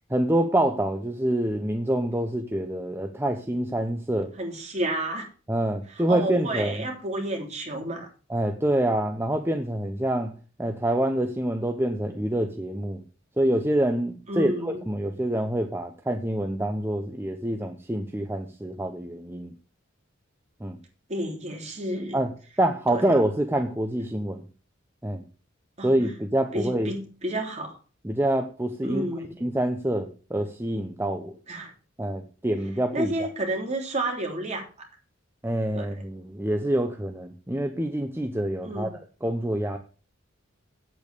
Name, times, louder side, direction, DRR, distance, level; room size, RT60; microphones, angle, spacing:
voice 1, 0.1-4.3 5.5-6.9 8.3-10.3 10.6-13.0 13.4-19.5 20.6-20.8 22.1-22.3 22.6-24.5 25.0-25.2 25.8-27.0 28.0-29.1 29.4-31.4 32.0-33.1 35.4-39.8, right 1 dB, 10° right, 5 dB, 0.9 m, -26 dB
voice 2, 4.4-5.3 6.1-8.1 14.3-14.8 21.1-22.2 22.9-23.0 25.8-25.9 26.5-27.8 28.8-29.3 31.5-31.7 32.9-34.9 35.7-35.9 38.6-39.0, right 1 dB, 35° right, 1 dB, 3.4 m, -30 dB
8.9 x 8.3 x 6.8 m, 0.38 s
head